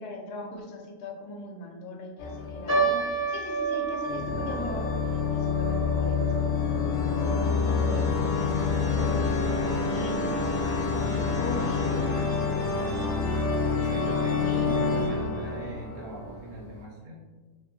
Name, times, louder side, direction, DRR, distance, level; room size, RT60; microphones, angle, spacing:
voice 1, 0.0-6.7 9.9-10.2 11.3-12.2 14.1-15.1, left 2 dB, 80° left, 1 dB, 1.1 m, -39 dB
sound 1, 2.2-3.4 4.0-16.6, left 5 dB, 55° left, 0.9 m, -27 dB
sound 2, 2.7-9.2 9.4-9.5 10.3-10.6 11.2-11.3 11.6-11.8, right 4 dB, 15° left, 0.6 m, -32 dB
voice 2, 7.7-8.3 8.9-10.1 10.8-11.7 12.1-12.7 13.7-17.2, right 1 dB, 65° right, -4 dB, 0.9 m, -40 dB
2.8 x 2.6 x 2.6 m, 1.4 s
omnidirectional pair, 1.7 m